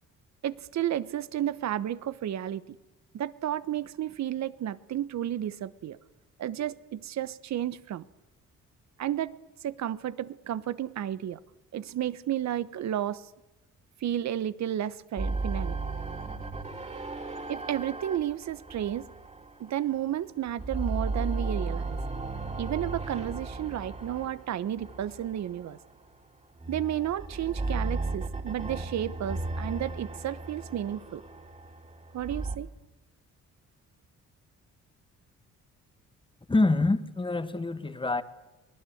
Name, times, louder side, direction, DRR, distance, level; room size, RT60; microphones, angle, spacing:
voice 1, 0.4-2.8 3.1-6.0 6.4-8.0 9.0-9.3 9.6-11.4 11.7-13.2 14.0-15.8 17.5-19.1 19.6-22.0 22.6-25.8 26.7-31.2 32.1-32.7, right 11 dB, 65° right, 1.1 m, -32 dB
sound 1, 15.2-20.1 20.5-25.8 26.6-32.6, right 3 dB, 20° right, 3.0 m, -35 dB
voice 2, 36.5-38.2, left 2 dB, 15° left, 1.6 m, -26 dB
24.5 x 19.5 x 8.0 m
cardioid pair, 90°, 30 cm